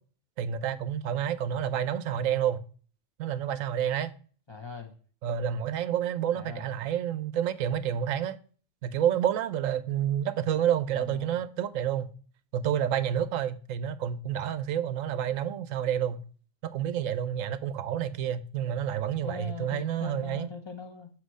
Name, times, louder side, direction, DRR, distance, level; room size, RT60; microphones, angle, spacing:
voice 1, 0.4-2.6 3.2-4.1 5.2-8.4 8.8-12.1 12.5-16.2 16.6-20.5, right 9 dB, 90° right, 1.0 m, -29 dB
voice 2, 4.5-4.9 6.3-6.7 10.9-11.5 19.1-21.1, left 6 dB, 20° left, 1.1 m, -41 dB
7.6 x 3.0 x 6.2 m
omnidirectional pair, 1.3 m